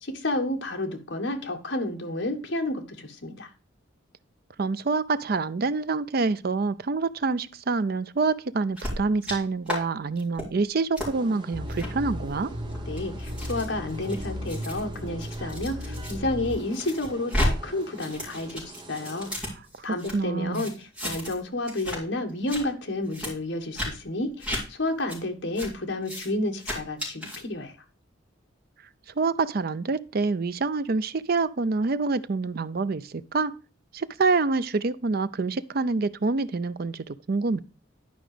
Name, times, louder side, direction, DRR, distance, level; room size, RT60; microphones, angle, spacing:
voice 1, 0.0-3.5 12.8-19.4 19.8-27.7, left 2 dB, 65° left, 1.6 m, -31 dB
voice 2, 4.6-12.5 20.1-20.7 29.2-33.5 33.9-37.6, right 3 dB, 50° right, 0.5 m, -26 dB
sound 1, 8.8-9.4 9.7-9.8 10.2-10.5 11.0-11.1 11.7-11.9 12.6-16.1 16.5-17.5 17.8-20.1 20.5-21.4 21.7-22.0 22.3-22.6 23.1-23.3 23.7-23.9 24.4-24.6 25.1-25.2 25.6-25.7 26.0-26.3 26.6-27.4, left 1 dB, 5° right, 3.5 m, -33 dB
sound 2, 11.1-19.4, right 2 dB, 25° right, 1.0 m, -46 dB
sound 3, 11.5-16.6, equal, 85° right, 1.5 m, -35 dB
11.0 x 5.1 x 5.0 m
head